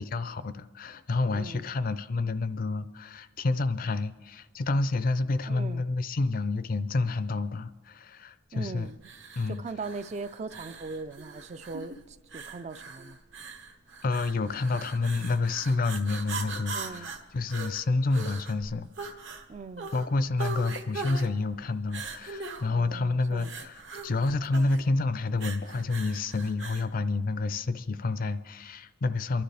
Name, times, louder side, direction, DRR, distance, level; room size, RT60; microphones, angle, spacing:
voice 1, 0.0-8.9 9.4-9.6 14.0-17.1 17.3-19.2 19.9-23.8 24.0-29.4, left 3 dB, 45° left, 0.4 m, -29 dB
voice 2, 1.3-1.6 5.5-5.8 8.5-9.0 9.5-13.2 16.7-17.1 19.5-19.9 22.7-23.5, right 3 dB, 35° right, 0.4 m, -40 dB
sound 1, 9.0-26.9, right 4 dB, 65° right, 1.3 m, -41 dB
28.0 x 11.5 x 3.4 m
head